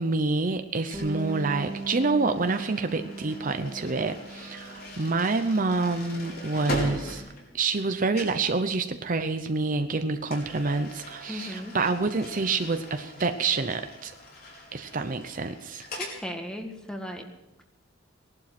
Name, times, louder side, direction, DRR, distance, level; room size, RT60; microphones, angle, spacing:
voice 1, 0.0-7.2 7.5-14.1 14.7-15.8, right 3 dB, 45° right, 8 dB, 0.8 m, -27 dB
sound 1, 0.9-8.5 10.3-16.2, left 1 dB, 55° left, 4.7 m, -41 dB
Bass guitar, 0.9-7.2, right 3 dB, 20° right, 2.6 m, -41 dB
voice 2, 11.3-11.8 16.0-17.2, equal, 5° left, 4 dB, 1.7 m, -36 dB
18.5 x 11.5 x 6.0 m, 0.93 s
head